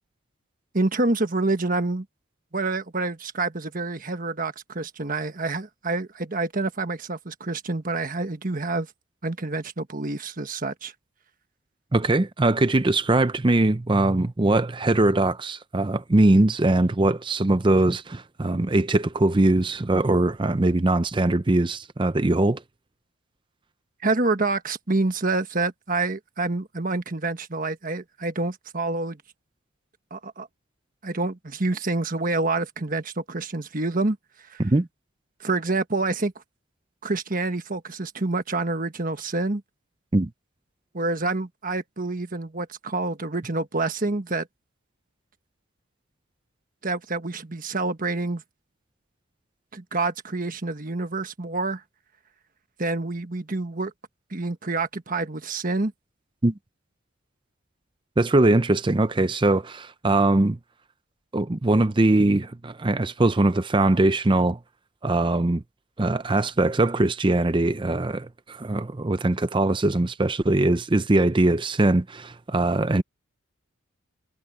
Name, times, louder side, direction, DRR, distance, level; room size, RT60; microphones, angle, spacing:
voice 1, 0.7-2.0 2.5-8.9 9.2-10.9 24.0-29.2 30.1-30.5 31.0-34.2 34.5-34.6 35.4-36.3 37.0-39.6 40.9-44.5 46.8-48.4 49.7-51.8 52.8-53.9 54.3-55.9, right 3 dB, 40° right, 1.4 m, -27 dB
voice 2, 11.9-22.6 34.6-34.9 40.1-40.3 56.4-56.5 58.2-60.6 61.3-64.6 65.0-65.6 66.0-73.0, right 2 dB, 25° right, 0.5 m, -21 dB
head